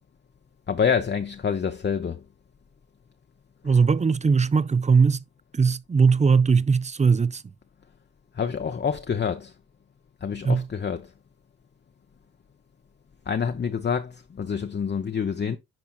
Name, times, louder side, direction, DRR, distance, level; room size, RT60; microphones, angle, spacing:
voice 1, 0.7-2.2 3.6-3.8 8.3-9.5 10.2-11.1 13.3-15.6, left 6 dB, 35° left, 0.6 m, -27 dB
voice 2, 3.6-5.2 5.5-7.4 10.4-10.7, right 5 dB, 20° right, 0.4 m, -20 dB
10.5 x 4.1 x 2.3 m
cardioid pair, 60°, 33 cm